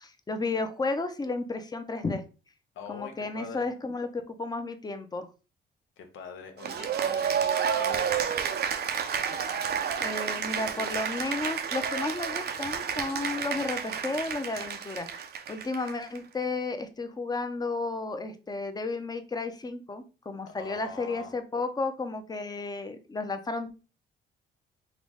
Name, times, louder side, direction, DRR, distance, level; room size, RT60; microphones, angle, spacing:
voice 1, 0.0-2.2 2.9-5.3 10.0-15.2 15.5-23.7, left 3 dB, 20° left, 8 dB, 0.7 m, -33 dB
voice 2, 2.7-3.7 6.0-8.7 9.1-9.5 20.6-21.3, left 4 dB, 80° left, 5 dB, 1.0 m, -44 dB
Cheering / Applause, 6.6-16.2, right 7 dB, 55° right, 0.6 m, -30 dB
3.9 x 3.0 x 3.5 m, 0.33 s
cardioid pair, 90°, 20 cm